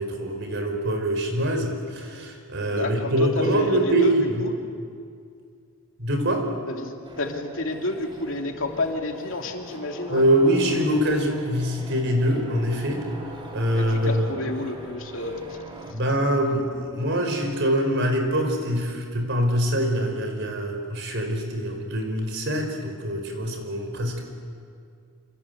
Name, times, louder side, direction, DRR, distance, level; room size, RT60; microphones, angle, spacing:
voice 1, 0.0-4.4 6.0-6.5 10.1-13.0 13.5-14.4 15.8-24.2, right 1 dB, 60° right, 4 dB, 4.8 m, -24 dB
voice 2, 2.7-4.5 6.7-10.2 13.7-15.6, left 2 dB, 65° left, 2 dB, 2.8 m, -30 dB
sound 1, 7.0-15.9, right 2 dB, 25° right, 3.0 m, -43 dB
27.5 x 26.5 x 8.0 m, 2.2 s
head